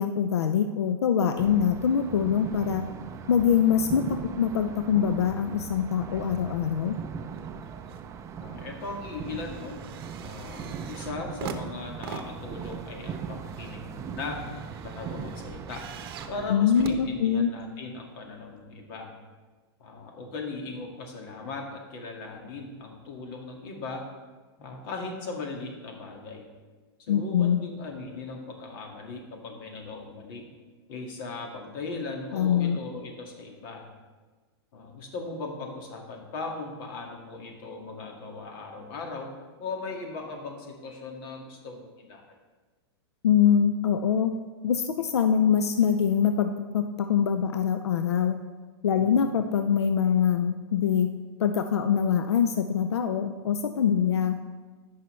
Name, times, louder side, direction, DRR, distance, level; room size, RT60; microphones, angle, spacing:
voice 1, 0.0-2.9 3.3-7.0 16.5-17.5 27.1-27.6 32.3-32.8 43.2-44.3 44.6-48.4 48.8-51.1 51.4-54.4, left 8 dB, 85° left, 8 dB, 0.5 m, -24 dB
sound 1, 1.4-16.5, right 7 dB, 20° right, 0.5 m, -39 dB
sound 2, 7.3-8.1 8.4-17.8 18.6-18.7, right 7 dB, 60° right, 0.8 m, -44 dB
voice 2, 8.4-9.8 10.2-14.4 14.8-15.8 16.3-19.1 19.8-24.1 24.6-26.5 27.1-30.5 30.9-33.9 34.7-39.3 39.6-42.2 49.0-49.4, left 3 dB, 55° left, 1 dB, 1.9 m, -38 dB
13.5 x 5.6 x 3.2 m, 1.3 s
hypercardioid pair, 125°, 14 cm